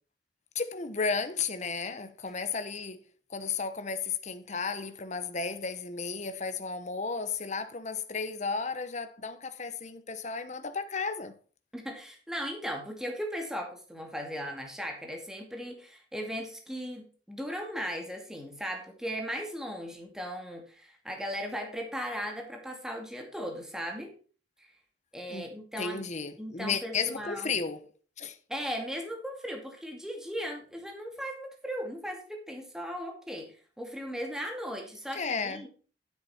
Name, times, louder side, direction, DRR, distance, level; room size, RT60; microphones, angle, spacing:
voice 1, 0.5-3.0 3.3-11.3 25.3-25.5 25.8-27.8 28.2-28.4 35.1-35.7, left 5 dB, 40° left, 1.1 m, -33 dB
voice 2, 11.7-24.1 24.6-24.7 25.1-26.0 26.4-27.5 28.5-35.7, equal, 5° right, 2.3 m, -37 dB
10.0 x 7.8 x 4.4 m
head